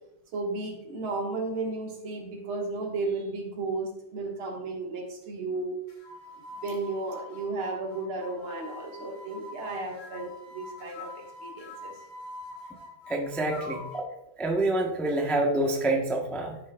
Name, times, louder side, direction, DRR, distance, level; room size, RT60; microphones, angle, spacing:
voice 1, 0.3-5.8 6.6-11.9, right 3 dB, 85° right, 0 dB, 2.4 m, -34 dB
sound 1, 5.9-14.1, left 2 dB, 65° left, 3.3 m, -44 dB
voice 2, 13.1-14.0 14.4-16.6, right 2 dB, ahead, 0 dB, 0.4 m, -27 dB
12.5 x 6.7 x 2.3 m, 0.88 s
omnidirectional pair, 2.2 m